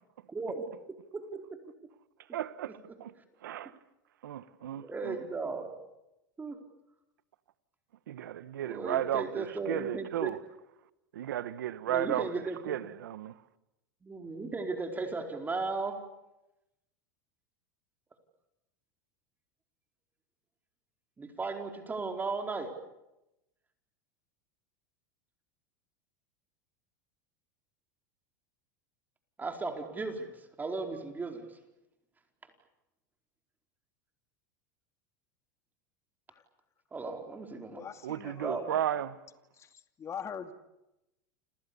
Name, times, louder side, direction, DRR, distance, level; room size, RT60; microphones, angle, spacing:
voice 1, 0.3-0.6 1.1-1.6 4.8-5.8 6.4-6.6 8.6-10.3 11.9-12.8 14.0-16.0 21.2-22.7 29.4-30.3 30.6-31.4 36.9-37.8 38.4-38.6, right 3 dB, 15° right, 4.6 m, -36 dB
voice 2, 2.3-3.1 3.4-3.7 4.2-5.2 8.1-10.4 11.1-13.4 38.0-39.2, right 11 dB, 85° right, 1.3 m, -34 dB
voice 3, 37.7-38.7 39.6-40.5, left 7 dB, 30° left, 2.5 m, -43 dB
29.5 x 26.5 x 7.1 m
supercardioid pair, 110°, 10 cm